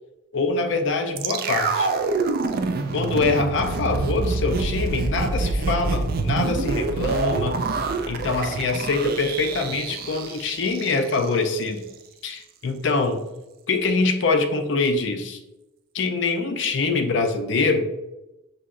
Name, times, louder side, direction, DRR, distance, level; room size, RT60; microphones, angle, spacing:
voice 1, 0.3-1.9 2.9-7.7 8.1-11.8 12.2-13.2 13.7-15.4 15.9-17.9, left 3 dB, 60° left, 6 dB, 0.5 m, -24 dB
sound 1, 1.2-11.3 11.6-11.7, right 3 dB, 45° right, 0.3 m, -26 dB
5.8 x 2.8 x 2.5 m, 0.98 s
head